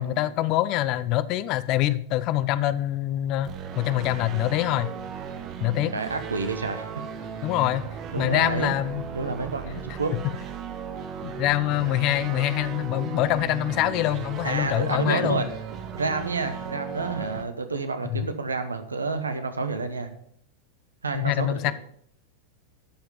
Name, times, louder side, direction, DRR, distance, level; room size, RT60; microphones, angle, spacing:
voice 1, 0.0-3.5 3.8-4.9 5.6-5.9 7.4-7.8 8.2-9.0 11.2-15.5 18.1-18.3 21.1-21.7, left 14 dB, 40° left, 16 dB, 0.5 m, -25 dB
sound 1, 3.4-17.4, right 7 dB, 35° right, 1.1 m, -36 dB
voice 2, 5.9-7.0 8.1-8.7 9.1-10.2 14.4-15.5 15.9-20.1 21.0-21.7, right 4 dB, 75° right, 9 dB, 1.1 m, -29 dB
13.0 x 5.8 x 5.6 m, 0.67 s
figure-of-eight pair, 90°, 0 cm